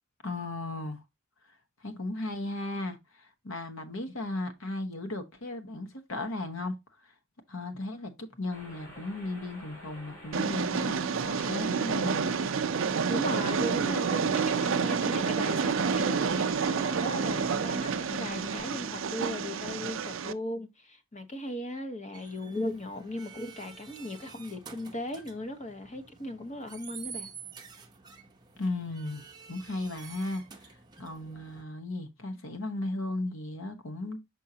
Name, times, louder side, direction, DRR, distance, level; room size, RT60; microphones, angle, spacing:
voice 1, 0.2-1.0 1.8-6.8 7.0-7.1 7.5-12.3 28.6-29.2 29.5-34.2, left 2 dB, 65° left, 1.2 m, -36 dB
sound 1, 8.5-18.6, equal, 85° left, 3.9 m, -49 dB
Train, 10.3-20.3, right 5 dB, 60° right, 0.5 m, -29 dB
voice 2, 13.1-27.3, equal, 35° left, 1.1 m, -37 dB
sound 2, 22.1-31.6, right 6 dB, 20° right, 0.7 m, -49 dB
6.4 x 5.4 x 2.8 m
head